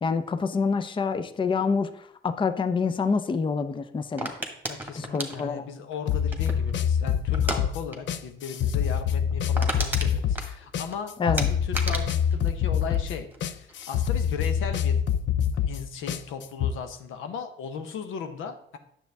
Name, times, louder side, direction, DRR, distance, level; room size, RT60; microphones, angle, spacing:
voice 1, 0.0-4.3 5.0-5.6 11.2-11.5, left 5 dB, 25° left, 10 dB, 0.5 m, -27 dB
sound 1, 4.2-6.7 7.3-7.6 7.9-8.2 8.4-8.5 8.9-9.0 9.3-11.0 11.4-13.4 13.7-14.1, right 1 dB, 10° right, 1.6 m, -33 dB
voice 2, 4.7-15.0 15.7-18.8, left 6 dB, 85° left, 8 dB, 1.0 m, -37 dB
sound 2, 6.1-16.7, left 8 dB, 65° left, 0.6 m, -26 dB
9.2 x 7.2 x 3.5 m, 0.70 s
cardioid pair, 90°, 20 cm